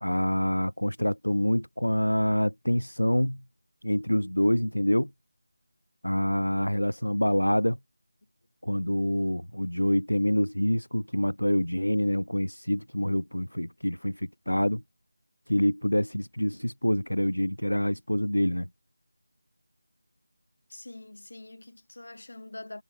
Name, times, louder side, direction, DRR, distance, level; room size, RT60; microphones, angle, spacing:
voice 1, 0.0-3.4 3.8-5.1 6.0-7.8 8.6-14.8 15.5-18.7, equal, 85° left, 0.7 m, -26 dB
voice 2, 20.7-22.8, left 2 dB, 60° left, 1.9 m, -44 dB
figure-of-eight pair, 165°, 0 cm